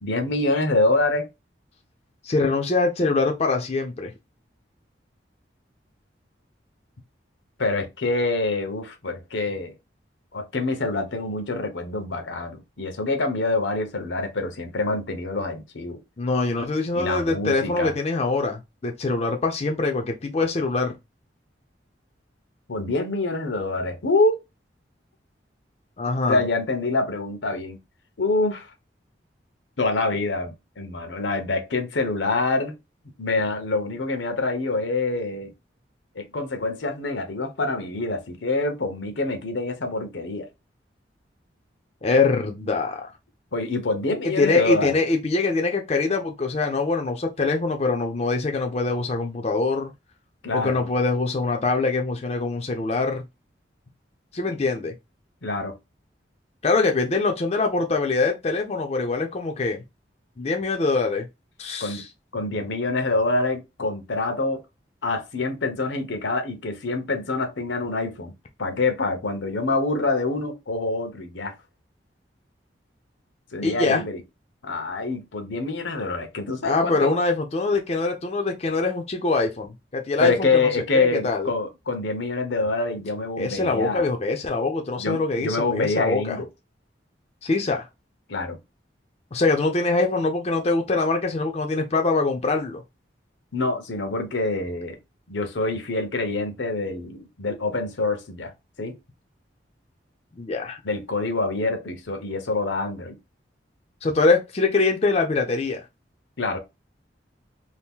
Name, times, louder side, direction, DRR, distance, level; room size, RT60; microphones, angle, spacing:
voice 1, 0.0-1.3 7.6-9.7 10.3-16.0 16.9-17.9 22.7-24.4 26.3-27.8 28.2-28.7 29.8-32.7 33.2-35.5 36.1-40.5 43.5-45.0 50.4-50.9 55.4-55.7 61.8-62.0 62.3-64.6 65.0-68.3 68.6-71.5 73.5-74.2 74.6-77.1 80.2-84.1 85.0-86.5 88.3-88.6 93.5-95.0 95.3-98.5 98.8-99.0 100.8-103.2 106.4-106.6, left 3 dB, 85° left, 0.8 m, -26 dB
voice 2, 2.2-4.1 16.2-21.0 26.0-26.4 42.0-43.1 44.2-49.9 50.5-53.2 54.3-54.9 56.6-59.8 60.4-61.3 61.6-62.0 73.6-74.0 76.6-81.5 83.4-86.4 87.4-87.9 89.3-92.8 100.4-100.8 104.0-105.8, left 3 dB, 35° left, 0.5 m, -23 dB
2.7 x 2.5 x 3.5 m
head